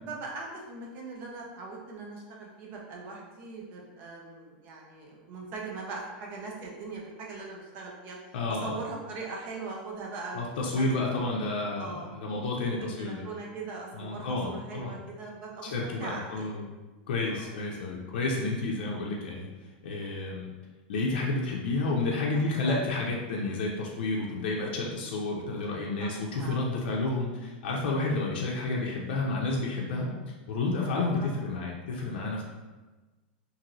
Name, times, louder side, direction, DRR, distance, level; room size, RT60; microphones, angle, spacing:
voice 1, 0.0-8.2 8.5-11.3 11.8-12.1 12.8-16.5 17.3-17.5 22.3-22.8 26.0-26.1 26.4-26.6 31.2-31.3, right 3 dB, 30° right, -2 dB, 0.5 m, -41 dB
voice 2, 8.3-8.8 10.3-13.2 13.9-15.0 15.6-16.7 17.1-19.5 19.8-20.5 20.9-32.4, left 2 dB, 75° left, -2 dB, 0.5 m, -30 dB
2.9 x 2.6 x 2.6 m, 1.2 s
supercardioid pair, 170°, 5 cm